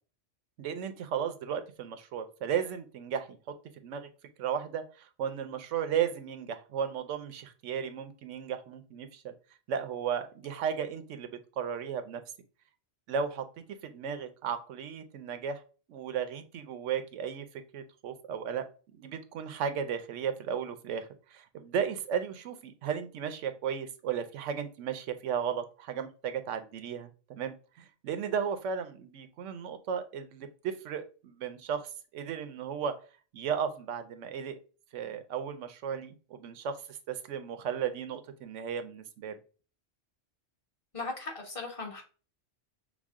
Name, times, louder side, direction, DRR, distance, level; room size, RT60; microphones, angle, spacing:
voice 1, 0.6-3.6 3.8-4.1 4.4-9.3 9.7-12.2 13.1-15.6 15.9-17.5 17.7-18.7 19.0-33.0 33.3-34.6 34.9-39.4, right 7 dB, 85° right, 9 dB, 1.0 m, -35 dB
voice 2, 40.9-42.0, left 3 dB, 30° left, 1 dB, 1.2 m, -37 dB
6.0 x 2.0 x 3.6 m, 0.36 s
omnidirectional pair, 1.2 m